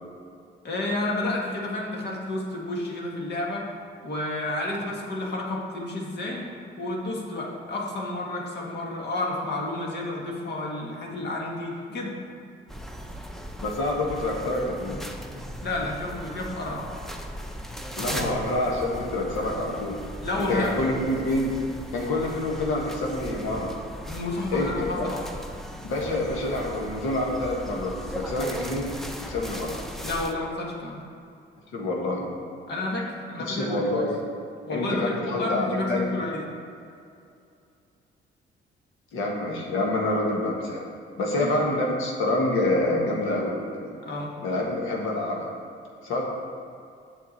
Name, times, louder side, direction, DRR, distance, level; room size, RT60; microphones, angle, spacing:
voice 1, 0.6-3.7 4.0-6.5 6.8-12.1 15.6-16.9 20.2-20.9 24.1-25.2 30.0-31.0 32.7-34.0 34.7-36.5 41.3-41.5 44.0-44.3, left 2 dB, 60° left, -2 dB, 1.5 m, -30 dB
sound 1, 12.7-30.3, equal, ahead, 0.6 m, -38 dB
voice 2, 13.6-15.0 18.0-20.0 20.4-21.5 21.9-23.7 24.5-25.1 25.8-29.7 31.7-32.3 33.5-34.2 34.7-36.2 39.1-40.8 41.2-43.9 44.4-45.5 46.0-46.3, left 1 dB, 85° left, -2 dB, 1.5 m, -27 dB
7.6 x 5.9 x 4.2 m, 2.5 s
cardioid pair, 90°, 20 cm